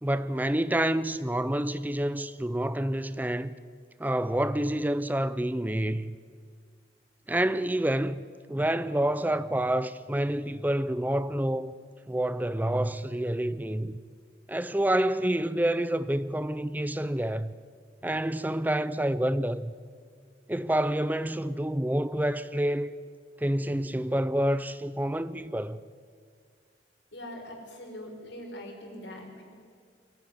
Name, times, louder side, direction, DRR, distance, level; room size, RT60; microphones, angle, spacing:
voice 1, 0.0-3.5 4.0-6.2 7.3-11.7 12.1-14.0 14.5-17.5 18.0-19.7 20.5-22.9 23.4-25.8, right 1 dB, 10° right, 0.5 m, -28 dB
voice 2, 27.1-29.4, left 1 dB, 90° left, 5.1 m, -42 dB
23.5 x 15.0 x 9.9 m
head